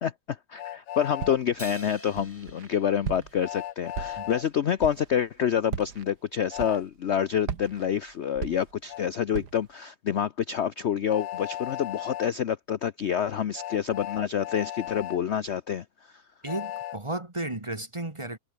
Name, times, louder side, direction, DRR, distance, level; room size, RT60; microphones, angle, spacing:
voice 1, 0.0-15.8, left 8 dB, 55° left, 0.8 m, -27 dB
Train, 0.6-1.4 3.4-4.4 6.5-6.8 8.9-9.0 11.1-12.3 13.5-15.2 16.4-17.0, left 13 dB, 85° left, 1.4 m, -36 dB
Walk footsteps, 1.2-1.6 2.2-2.7 3.0-3.5 3.9-4.4 4.8-5.1 5.6-6.1 6.6-7.1 7.4-9.0 9.3-9.7, right 7 dB, 70° right, 2.2 m, -36 dB
Crash cymbal, 1.6-4.3, equal, 5° left, 4.1 m, -46 dB
voice 2, 16.4-18.4, right 2 dB, 20° right, 1.6 m, -33 dB
omnidirectional pair, 1.8 m